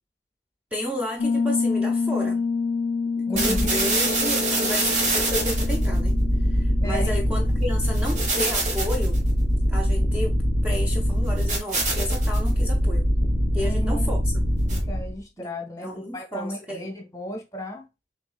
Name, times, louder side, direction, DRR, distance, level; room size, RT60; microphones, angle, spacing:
voice 1, 0.7-2.5 3.2-9.2 9.7-13.1 13.5-14.5 15.4-16.9, left 1 dB, 10° right, 0.6 m, -32 dB
Piano, 1.2-9.7, left 4 dB, 85° left, 0.4 m, -29 dB
voice 2, 3.3-3.6 6.8-7.1 13.6-14.1 14.7-17.8, equal, 20° left, 1.1 m, -34 dB
sound 1, 3.4-15.2, equal, 45° right, 1.3 m, -23 dB
6.4 x 3.0 x 2.3 m
head